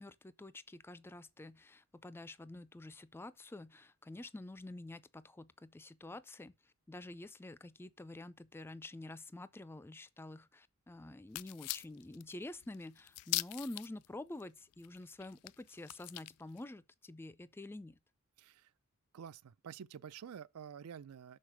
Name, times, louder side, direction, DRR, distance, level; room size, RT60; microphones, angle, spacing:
voice 1, 0.0-18.0, left 2 dB, 10° left, 0.3 m, -48 dB
sound 1, 11.3-14.1 14.4-14.5 14.7-16.6, left 19 dB, 90° left, 0.3 m, -41 dB
voice 2, 18.4-18.7 19.1-21.4, right 8 dB, 80° right, 0.4 m, -49 dB
6.5 x 4.2 x 5.9 m
head